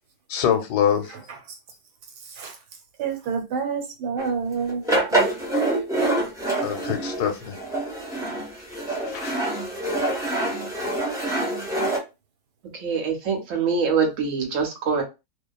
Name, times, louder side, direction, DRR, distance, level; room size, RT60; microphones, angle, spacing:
voice 1, 0.3-1.2 6.6-7.6 8.9-9.3, left 8 dB, 90° left, 1.2 m, -24 dB
voice 2, 3.0-4.8 5.1-5.2, right 5 dB, 85° right, 1.3 m, -28 dB
sound 1, 4.2-4.3 4.7-12.0, right 2 dB, 5° right, 0.3 m, -26 dB
voice 3, 12.7-15.0, right 5 dB, 60° right, 0.9 m, -24 dB
2.5 x 2.3 x 2.3 m
omnidirectional pair, 1.7 m